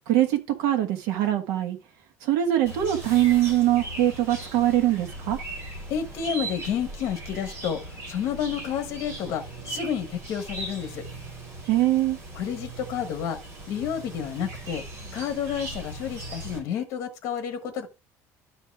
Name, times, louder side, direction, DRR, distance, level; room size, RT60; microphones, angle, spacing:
voice 1, 0.1-1.8 2.2-5.4 11.7-12.2, right 13 dB, 75° right, 1.6 m, -22 dB
Chirp tweet, 2.7-16.6, right 2 dB, 50° right, 5.0 m, -39 dB
voice 2, 5.9-11.1 12.3-13.4 13.7-14.8 15.1-17.9, left 8 dB, 55° left, 1.3 m, -30 dB
12.0 x 4.6 x 3.5 m
cardioid pair, 170°, 6 cm